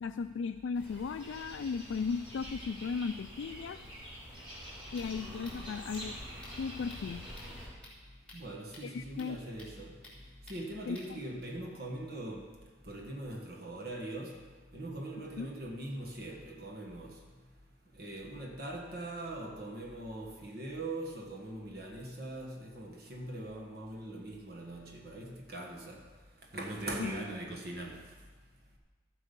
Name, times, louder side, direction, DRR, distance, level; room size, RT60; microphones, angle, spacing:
voice 1, 0.0-3.8 4.9-6.2 6.6-7.3 8.8-9.4 10.9-11.2 15.4-15.5 27.0-27.1, left 5 dB, 80° left, 0.3 m, -36 dB
sound 1, 0.7-7.7, equal, 30° right, 3.8 m, -46 dB
sound 2, 4.9-11.4, left 1 dB, 5° left, 4.0 m, -56 dB
voice 2, 8.3-9.9 10.5-12.5 12.9-14.4 14.7-17.1 18.0-26.0 26.5-28.0, right 1 dB, 50° right, 1.4 m, -41 dB
13.5 x 8.1 x 5.3 m
head